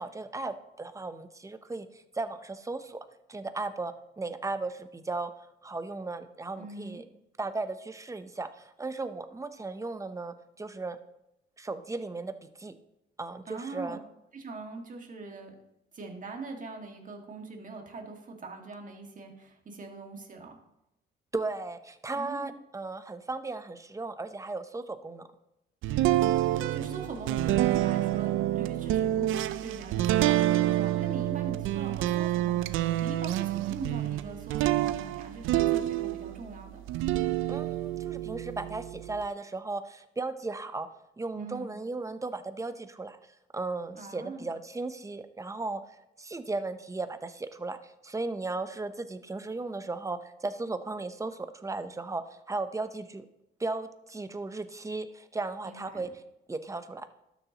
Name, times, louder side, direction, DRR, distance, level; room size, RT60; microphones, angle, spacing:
voice 1, 0.0-3.0 3.3-5.3 5.6-7.0 7.4-11.0 11.6-12.7 13.2-14.0 21.3-25.3 37.5-40.9 41.2-43.2 43.5-45.8 46.2-52.2 52.5-53.3 53.6-56.1 56.5-57.1, right 3 dB, 15° right, 10 dB, 0.7 m, -36 dB
voice 2, 6.6-7.0 13.5-14.0 14.3-15.5 15.9-20.6 22.2-22.5 26.0-36.8 41.3-41.8 44.0-44.5 55.6-56.0, right 3 dB, 40° right, 2 dB, 1.9 m, -42 dB
sound 1, 25.8-36.4 36.9-39.2, right 14 dB, 85° right, 0.5 m, -28 dB
12.5 x 7.0 x 2.9 m, 0.86 s
cardioid pair, 90°, 20 cm